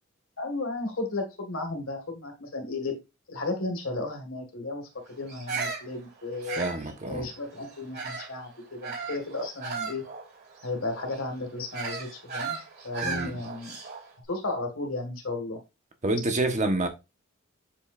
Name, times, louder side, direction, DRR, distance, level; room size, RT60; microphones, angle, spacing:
voice 1, 0.4-3.0 3.3-6.7 7.1-10.0 10.6-12.6 12.8-13.8 14.3-15.6, left 2 dB, 80° left, 2.0 m, -34 dB
Bird vocalization bird call bird song, 5.3-8.4 8.8-14.1, right 5 dB, 50° right, 2.8 m, -36 dB
voice 2, 6.4-7.3 13.0-13.4 16.0-16.9, right 2 dB, 35° right, 1.2 m, -28 dB
7.1 x 5.4 x 2.5 m
head